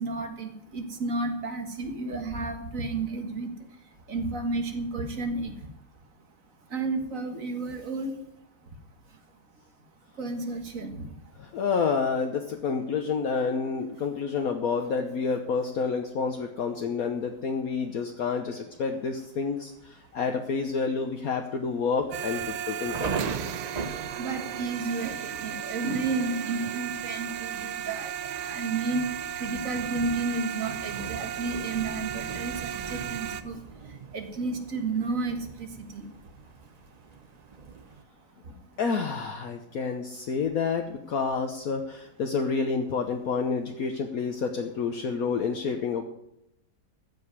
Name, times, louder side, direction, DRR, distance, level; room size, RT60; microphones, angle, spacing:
voice 1, 0.0-3.5 4.1-5.5 6.7-8.1 10.2-11.1 24.2-28.1 28.4-29.1 29.4-33.5 34.1-36.1, right 3 dB, 50° right, 6 dB, 2.0 m, -31 dB
voice 2, 11.4-23.1 38.8-46.0, left 5 dB, 60° left, 4 dB, 1.3 m, -29 dB
Thunder, 18.7-19.3 19.8-19.9 20.2-20.6 21.0-21.1 21.8-38.0, right 4 dB, 35° right, 0.7 m, -41 dB
sound 1, 22.1-33.4, right 10 dB, 80° right, 1.3 m, -35 dB
15.0 x 5.4 x 9.5 m, 0.80 s
omnidirectional pair, 1.8 m